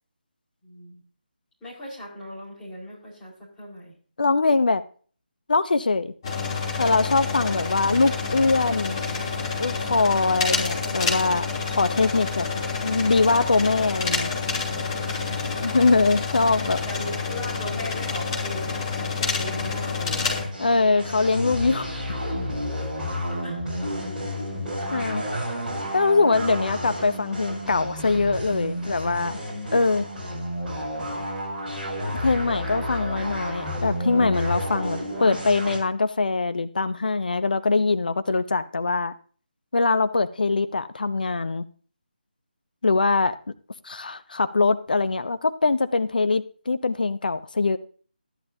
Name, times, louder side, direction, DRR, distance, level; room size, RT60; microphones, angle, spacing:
voice 1, 0.6-1.0 1.6-4.0 7.3-7.5 15.1-15.4 16.8-20.5 22.7-22.9 23.3-23.6, left 1 dB, 10° left, 5.0 m, -38 dB
voice 2, 4.2-4.8 5.5-6.1 6.8-9.0 9.6-12.5 12.8-14.3 15.6-16.8 20.6-21.9 24.9-25.2 25.9-29.4 29.7-30.1 32.1-39.1 39.7-41.7 42.8-43.3 43.8-47.8, left 3 dB, 60° left, 0.8 m, -22 dB
sound 1, 6.2-20.4, left 4 dB, 30° left, 3.0 m, -28 dB
sound 2, 20.5-35.8, equal, 10° right, 5.7 m, -31 dB
13.5 x 11.0 x 2.8 m
figure-of-eight pair, 155°, 5 cm